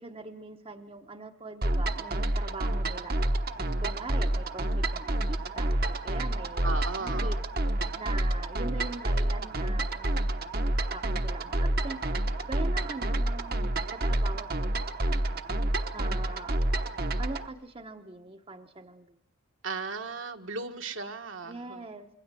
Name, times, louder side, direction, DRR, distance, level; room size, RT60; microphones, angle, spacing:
voice 1, 0.0-3.2 3.8-6.7 7.0-7.4 7.9-10.2 10.9-14.8 15.9-16.6 17.2-19.1 21.4-22.1, right 2 dB, 25° right, 6 dB, 0.9 m, -42 dB
sound 1, 1.6-17.5, right 1 dB, 45° right, 1.1 m, -29 dB
voice 2, 6.6-7.4 19.6-21.8, right 4 dB, 65° right, 5 dB, 1.5 m, -36 dB
26.5 x 22.5 x 7.5 m, 0.82 s
head